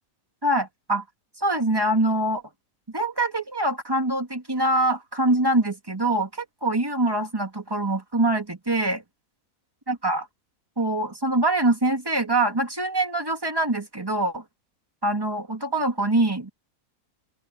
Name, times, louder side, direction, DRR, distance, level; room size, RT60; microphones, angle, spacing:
voice 1, 0.4-1.0 1.4-2.4 2.9-9.0 9.9-10.3 10.8-14.4 15.0-16.5, right 2 dB, 15° right, 2.3 m, -24 dB
open air
omnidirectional pair, 1.6 m